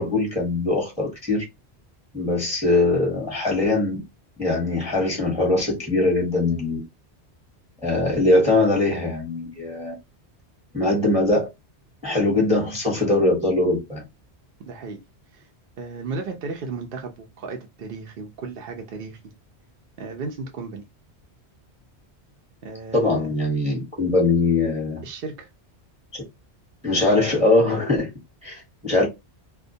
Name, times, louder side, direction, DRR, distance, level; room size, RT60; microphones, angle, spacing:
voice 1, 0.0-1.4 2.1-4.0 4.4-6.8 7.8-9.9 10.7-11.5 12.0-14.0 22.9-25.0 26.1-26.2 26.8-28.1 28.4-29.1, left 2 dB, 5° right, 0.8 m, -21 dB
voice 2, 14.6-15.0 15.3-15.4 15.8-19.2 20.0-20.8 22.6-23.3 25.0-25.5, right 4 dB, 60° right, 0.7 m, -34 dB
2.2 x 2.2 x 2.6 m
omnidirectional pair, 1.1 m